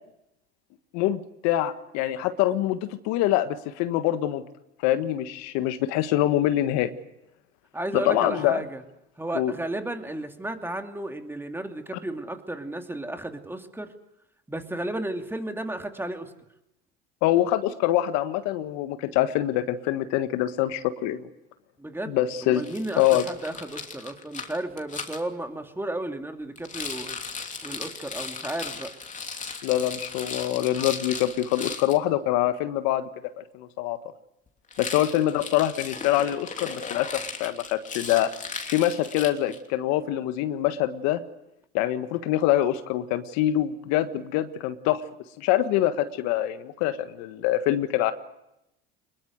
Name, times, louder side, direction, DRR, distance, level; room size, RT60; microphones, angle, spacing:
voice 1, 0.9-2.8 3.0-4.4 4.8-6.9 7.9-8.6 9.3-9.5 17.2-21.3 22.1-22.6 23.0-23.2 29.6-33.1 33.5-34.0 34.8-38.3 38.7-41.2 41.7-45.0 45.4-48.1, left 13 dB, 65° left, 10 dB, 1.6 m, -25 dB
voice 2, 7.7-8.8 9.2-13.9 14.5-16.3 21.8-22.2 22.4-27.2 27.6-28.9, right 1 dB, 10° right, 6 dB, 2.7 m, -33 dB
Rattle, 22.6-25.2 26.6-32.0 34.7-39.7, left 5 dB, 25° left, 3.1 m, -37 dB
23.5 x 21.5 x 8.0 m, 0.87 s
hypercardioid pair, 85°, 29 cm